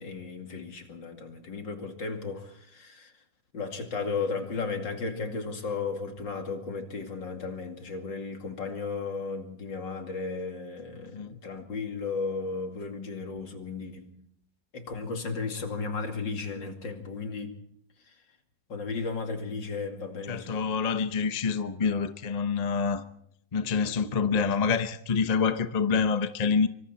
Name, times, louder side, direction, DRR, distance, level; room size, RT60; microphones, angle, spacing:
voice 1, 0.0-3.1 3.5-14.2 14.7-17.6 18.7-20.5, left 4 dB, 70° left, 3.1 m, -34 dB
voice 2, 20.3-23.0 23.5-26.7, left 5 dB, 30° left, 0.7 m, -27 dB
25.5 x 25.0 x 4.3 m
omnidirectional pair, 2.0 m